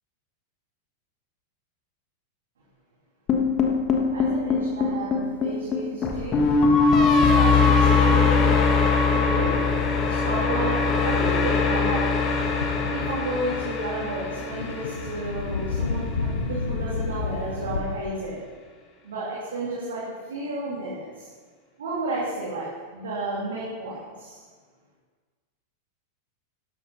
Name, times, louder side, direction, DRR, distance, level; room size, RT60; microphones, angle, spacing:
sound 1, 3.3-15.5, left 4 dB, 30° left, 1.5 m, -22 dB
voice 1, 4.1-6.4 6.9-9.5 10.1-12.0 12.9-18.4 19.0-21.3 21.8-24.4, right 2 dB, 65° right, -6 dB, 2.8 m, -32 dB
Thunder, 8.1-17.8, left 4 dB, 70° left, 1.2 m, -33 dB
12.5 x 11.5 x 4.2 m, 1.5 s
figure-of-eight pair, 90°, 0 cm